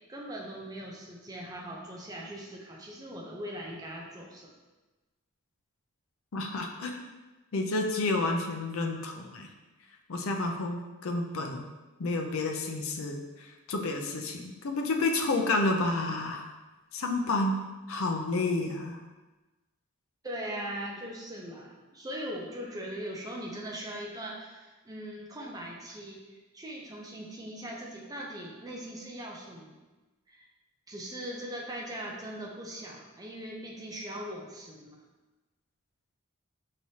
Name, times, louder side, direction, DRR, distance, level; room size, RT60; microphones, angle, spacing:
voice 1, 0.1-4.5 20.2-29.8 30.3-30.5 30.9-35.0, right 1 dB, 15° right, -2 dB, 0.5 m, -40 dB
voice 2, 6.3-7.0 7.5-9.5 10.1-11.6 12.0-16.4 16.9-17.6 17.9-19.0, left 2 dB, 65° left, 2 dB, 0.5 m, -30 dB
5.7 x 3.2 x 2.8 m, 1.2 s
head